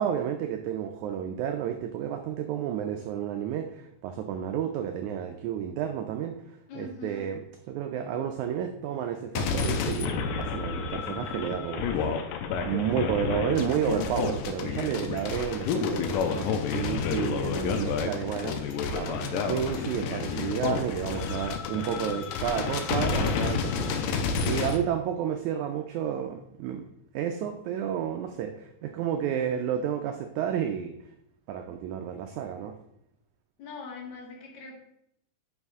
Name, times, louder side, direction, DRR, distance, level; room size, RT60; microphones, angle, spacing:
voice 1, 0.0-6.3 6.7-7.4 7.7-12.1 12.6-26.9 27.1-30.9 31.5-32.8, right 9 dB, 90° right, 6 dB, 1.7 m, -31 dB
voice 2, 6.7-7.2 33.6-34.8, left 4 dB, 60° left, 0 dB, 2.6 m, -41 dB
sound 1, 9.4-24.8, left 5 dB, 80° left, 2.2 m, -30 dB
9.7 x 5.3 x 3.5 m, 0.77 s
omnidirectional pair, 4.0 m